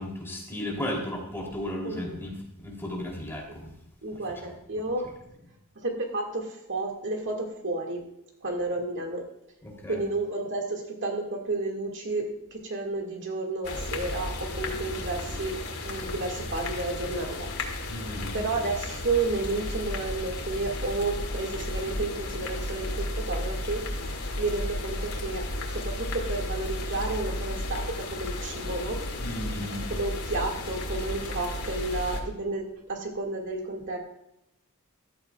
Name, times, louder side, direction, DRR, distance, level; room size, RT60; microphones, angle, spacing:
voice 1, 0.0-3.7 9.6-10.0 17.9-18.4 29.2-29.9, left 1 dB, 10° left, -1 dB, 3.4 m, -35 dB
voice 2, 1.8-2.2 4.0-5.1 5.8-8.0 8.4-9.2 9.9-15.6 15.8-17.5 18.3-25.4 25.7-29.0 29.9-34.0, right 2 dB, 55° right, 1 dB, 2.2 m, -31 dB
sound 1, 13.6-32.2, left 1 dB, 90° left, 2.4 m, -33 dB
15.0 x 13.5 x 2.5 m, 0.82 s
head